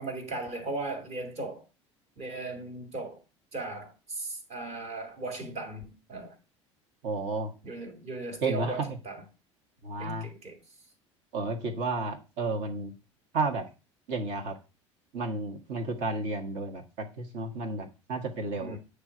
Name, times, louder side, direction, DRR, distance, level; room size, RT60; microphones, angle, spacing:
voice 1, 0.0-1.6 2.2-3.2 3.5-6.4 7.6-9.2 10.0-10.6 18.6-18.8, right 2 dB, 45° right, 2.1 m, -37 dB
voice 2, 7.0-7.5 8.4-8.9 9.8-10.3 11.3-12.9 13.3-13.7 14.1-14.5 15.1-18.8, right 3 dB, 60° right, 1.5 m, -32 dB
8.6 x 3.4 x 5.0 m
figure-of-eight pair, 65°, 16 cm